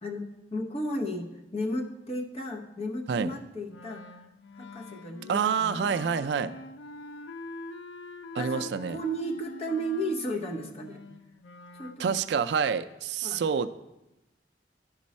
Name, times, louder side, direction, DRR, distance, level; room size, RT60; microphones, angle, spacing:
voice 1, 0.0-4.1 4.5-6.0 8.4-11.0 11.7-12.2 13.2-13.4, equal, 35° left, 1 dB, 0.8 m, -34 dB
Wind instrument woodwind instrument, 3.7-12.0, left 2 dB, 90° left, 0.5 m, -44 dB
voice 2, 5.3-6.5 8.3-9.0 12.0-13.7, right 6 dB, 70° right, 11 dB, 0.3 m, -27 dB
10.5 x 5.3 x 4.2 m, 0.94 s
head